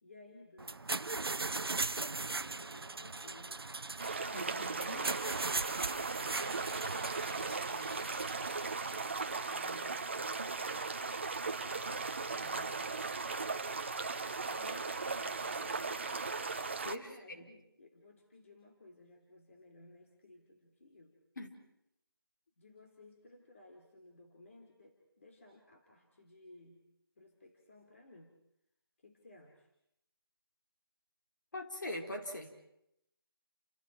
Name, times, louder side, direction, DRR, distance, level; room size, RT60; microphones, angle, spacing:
voice 1, 0.0-3.7 4.5-5.2 5.9-8.4 9.1-13.4 14.5-16.2 17.0-21.2 22.6-26.8 27.1-28.4 29.0-29.7, left 2 dB, 35° left, 1 dB, 3.3 m, -58 dB
sound 1, 0.6-9.2, right 3 dB, 75° right, 1.1 m, -39 dB
sound 2, 4.0-17.0, right 4 dB, 30° right, 1.0 m, -37 dB
voice 2, 4.3-5.1 16.8-17.1 17.4-17.5 21.4-21.5 31.5-32.7, left 1 dB, 50° left, 2 dB, 4.5 m, -42 dB
30.0 x 28.5 x 4.6 m, 0.82 s
figure-of-eight pair, 175°, 13 cm